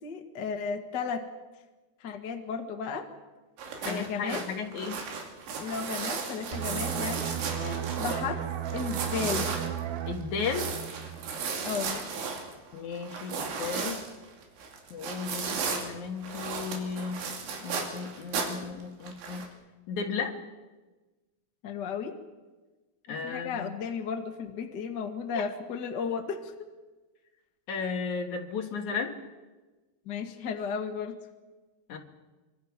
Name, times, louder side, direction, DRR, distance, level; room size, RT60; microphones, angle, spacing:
voice 1, 0.0-1.3 2.0-3.1 3.8-4.4 5.6-7.3 8.0-9.5 11.6-12.0 21.6-22.1 23.2-26.5 30.0-31.1, left 6 dB, 70° left, 4 dB, 1.0 m, -34 dB
sound 1, 3.6-8.3 8.6-15.9 16.2-18.7 19.0-19.4, right 5 dB, 85° right, 5.0 m, -35 dB
voice 2, 3.8-5.0 7.5-7.9 10.1-10.7 12.7-14.0 14.9-17.3 17.6-19.5 19.9-20.4 23.1-23.7 25.4-25.5 27.7-29.1 31.9-32.0, left 5 dB, 55° left, 4 dB, 2.4 m, -35 dB
sound 2, 6.5-11.9 12.2-12.5, right 10 dB, 65° right, 2.8 m, -35 dB
25.5 x 24.5 x 6.0 m, 1.2 s
omnidirectional pair, 5.1 m